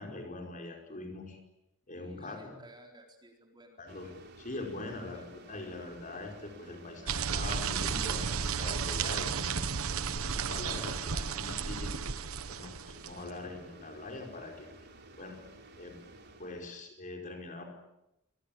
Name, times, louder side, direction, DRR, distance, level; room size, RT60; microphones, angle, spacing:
voice 1, 0.0-1.4 1.9-2.5 3.8-9.6 9.9-14.7 15.2-15.4 15.8-15.9 16.4-17.6, left 2 dB, 40° left, 3 dB, 5.0 m, -43 dB
voice 2, 1.9-3.8 5.1-5.2, right 1 dB, 20° right, 3 dB, 4.2 m, -55 dB
sound 1, 3.9-16.9, right 2 dB, 50° right, 3.8 m, -53 dB
sound 2, 7.1-13.3, right 6 dB, 85° right, 1.1 m, -33 dB
27.5 x 20.5 x 8.8 m, 0.87 s
head